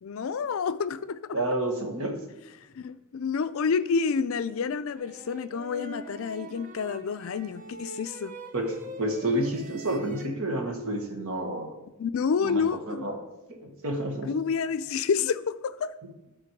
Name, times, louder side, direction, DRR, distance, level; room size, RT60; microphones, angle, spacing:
voice 1, 0.0-1.4 2.8-8.4 12.0-13.1 14.3-15.9, left 5 dB, 65° left, 14 dB, 0.4 m, -29 dB
voice 2, 1.3-2.1 8.5-11.7 12.4-13.1 13.5-14.3, right 1 dB, 70° right, 3 dB, 1.4 m, -30 dB
sound 1, 5.0-10.3, right 1 dB, 35° right, 0.7 m, -43 dB
10.5 x 4.3 x 4.6 m, 1.0 s
head